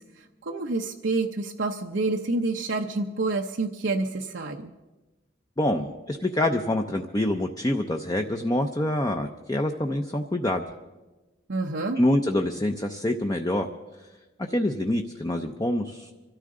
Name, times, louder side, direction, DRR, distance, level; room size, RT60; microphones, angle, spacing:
voice 1, 0.2-4.7 11.5-12.0, right 3 dB, 75° right, 2 dB, 0.7 m, -28 dB
voice 2, 5.6-10.6 12.0-13.7 14.5-16.1, left 1 dB, 20° left, 4 dB, 0.6 m, -26 dB
25.5 x 13.5 x 3.8 m, 1.1 s
head